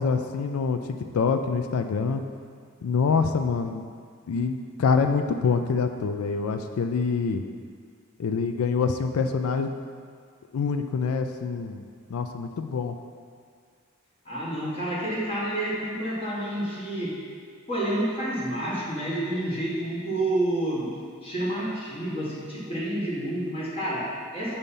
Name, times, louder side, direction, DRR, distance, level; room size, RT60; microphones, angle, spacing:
voice 1, 0.0-2.2 2.8-3.8 4.3-7.4 8.2-9.7 10.5-11.8 12.1-12.9, left 5 dB, 90° left, 7 dB, 0.4 m, -25 dB
voice 2, 14.2-17.2 17.7-20.9 21.2-24.6, right 1 dB, 25° left, -7 dB, 1.7 m, -29 dB
7.1 x 4.1 x 5.3 m, 2.1 s
head